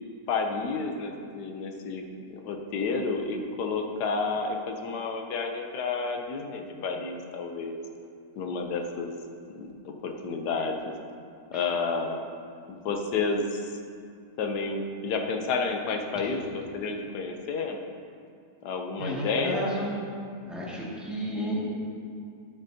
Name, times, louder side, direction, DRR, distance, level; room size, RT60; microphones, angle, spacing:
voice 1, 0.3-7.8 8.4-9.2 9.5-10.9 11.5-12.2 12.7-13.7 14.4-17.8 18.6-19.7, left 4 dB, 90° left, 3 dB, 1.3 m, -30 dB
voice 2, 19.0-19.9 20.5-21.6, equal, ahead, -7 dB, 1.9 m, -32 dB
12.0 x 8.8 x 2.8 m, 2.3 s
omnidirectional pair, 1.7 m